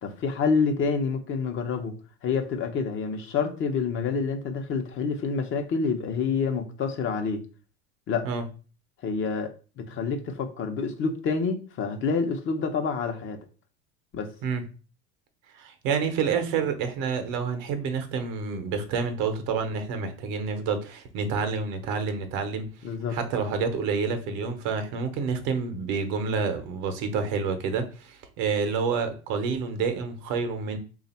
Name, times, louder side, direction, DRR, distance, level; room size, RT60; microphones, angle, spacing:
voice 1, 0.0-2.0 2.2-7.4 8.1-8.3 9.0-13.4 14.1-14.3 22.8-23.2, left 5 dB, 45° left, 0.8 m, -28 dB
voice 2, 15.5-22.7 23.1-30.8, right 5 dB, 70° right, 0.8 m, -28 dB
3.3 x 2.4 x 4.2 m
supercardioid pair, 110°, 30 cm